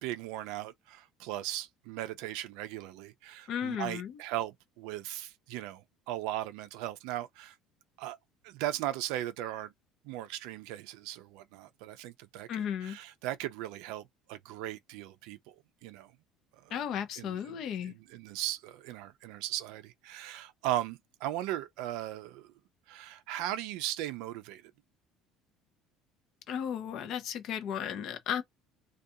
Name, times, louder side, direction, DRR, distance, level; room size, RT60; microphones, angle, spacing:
voice 1, 0.0-7.5 8.0-8.2 8.4-9.7 10.0-14.0 14.3-15.5 15.8-16.1 16.6-16.7 17.2-17.6 17.8-22.5 22.9-24.7, right 14 dB, 75° right, 0.4 m, -38 dB
voice 2, 3.5-4.2 12.5-13.0 16.7-17.9 26.5-28.4, left 9 dB, 45° left, 0.5 m, -34 dB
2.4 x 2.3 x 2.7 m
cardioid pair, 180°, 0 cm